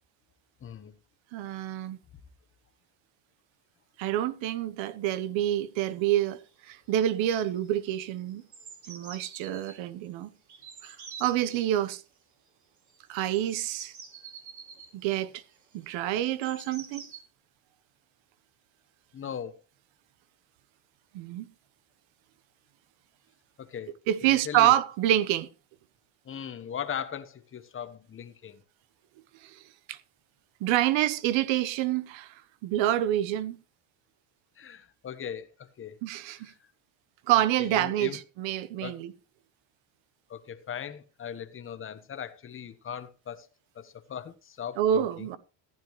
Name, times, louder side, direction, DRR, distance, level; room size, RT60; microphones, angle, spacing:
voice 1, 0.6-0.9 19.1-19.5 23.6-24.0 24.2-24.7 26.2-28.6 34.6-36.0 37.3-38.2 38.8-39.0 40.3-43.5 43.7-45.3, left 8 dB, 25° left, 1.1 m, -39 dB
voice 2, 1.3-2.0 4.0-6.4 6.7-8.4 8.9-10.3 10.8-12.0 13.1-13.9 14.9-15.4 15.7-17.0 21.1-21.5 24.1-25.5 29.4-29.6 29.9-30.0 30.6-32.3 32.6-33.6 36.0-36.5 37.3-39.1 44.8-45.4, right 12 dB, 65° right, 1.1 m, -27 dB
sound 1, 5.9-6.0 6.2-6.6 6.9-7.2 7.5-9.8 10.5-11.8 12.9-17.2, right 5 dB, 35° right, 3.4 m, -48 dB
15.0 x 10.0 x 3.1 m
cardioid pair, 140°, 50 cm